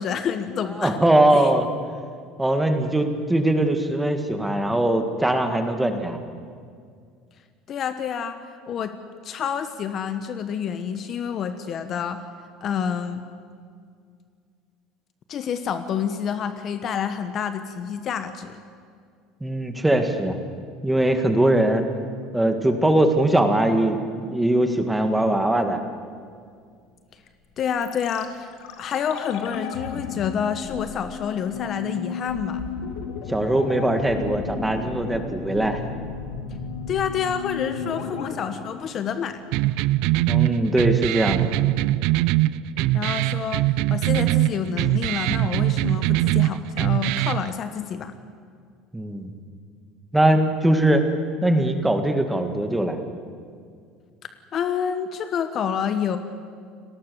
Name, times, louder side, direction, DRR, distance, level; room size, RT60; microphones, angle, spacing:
voice 1, 0.0-0.9 1.3-1.5 7.7-8.4 8.7-8.9 9.2-12.2 12.6-13.2 15.3-18.6 27.6-28.5 28.8-32.6 36.9-39.4 42.9-43.6 43.9-48.1 54.5-56.2, left 7 dB, 35° left, 9 dB, 1.1 m, -28 dB
voice 2, 0.8-1.7 2.4-6.2 19.4-20.4 20.8-21.8 22.3-25.8 33.3-35.8 40.3-41.5 48.9-49.3 50.1-51.1 51.4-53.0, right 1 dB, 5° right, 6 dB, 1.9 m, -21 dB
sound 1, 27.8-39.8 40.1-40.2, left 5 dB, 80° left, 2.9 m, -34 dB
sound 2, 39.5-47.5, right 16 dB, 65° right, 0.6 m, -22 dB
29.5 x 19.0 x 7.0 m, 2.2 s
cardioid pair, 150°, 0 cm